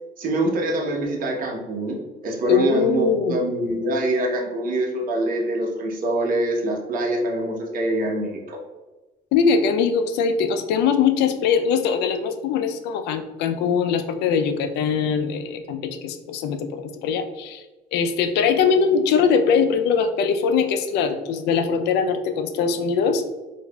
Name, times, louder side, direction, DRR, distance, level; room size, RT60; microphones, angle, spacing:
voice 1, 0.2-8.6, right 1 dB, 55° right, -1 dB, 1.0 m, -25 dB
voice 2, 2.5-3.4 9.3-17.6 17.9-23.2, left 6 dB, 85° left, 7 dB, 0.4 m, -21 dB
4.7 x 2.6 x 2.2 m, 1.2 s
cardioid pair, 110°, 17 cm